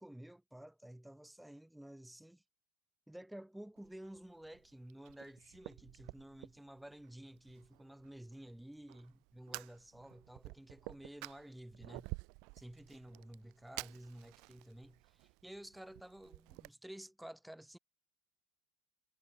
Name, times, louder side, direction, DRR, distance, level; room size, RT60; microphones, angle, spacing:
voice 1, 0.0-2.4 3.1-12.1 12.6-17.8, right 1 dB, ahead, 1.3 m, -52 dB
Fire, 3.8-16.7, right 30 dB, 60° right, 0.4 m, -52 dB
cardioid pair, 155°, 0 cm